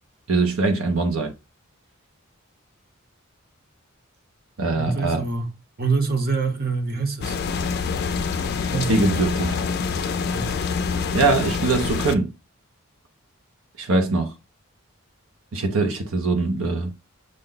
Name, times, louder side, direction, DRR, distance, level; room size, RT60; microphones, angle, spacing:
voice 1, 0.3-1.3 4.6-5.2 8.9-9.6 11.1-12.3 13.8-14.3 15.5-16.9, right 3 dB, 70° right, 0.7 m, -22 dB
voice 2, 4.7-5.5 5.8-7.4 8.7-9.1 10.3-10.5, right 4 dB, 45° right, 0.9 m, -25 dB
sound 1, 7.2-12.1, left 5 dB, 50° left, 0.4 m, -26 dB
6.4 x 2.2 x 3.8 m
head